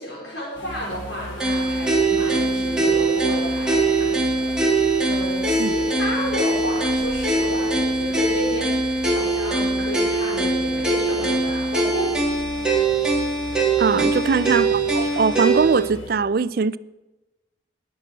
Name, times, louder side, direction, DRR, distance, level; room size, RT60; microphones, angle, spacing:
voice 1, 0.0-4.7 5.0-12.1 14.2-14.7, equal, 65° left, 5.6 m, -32 dB
sound 1, 0.5-16.1, left 1 dB, 80° left, 2.5 m, -38 dB
sound 2, 1.4-15.8, right 3 dB, 5° right, 2.0 m, -22 dB
voice 2, 13.8-16.8, right 5 dB, 50° right, 0.4 m, -21 dB
19.5 x 7.6 x 6.1 m
head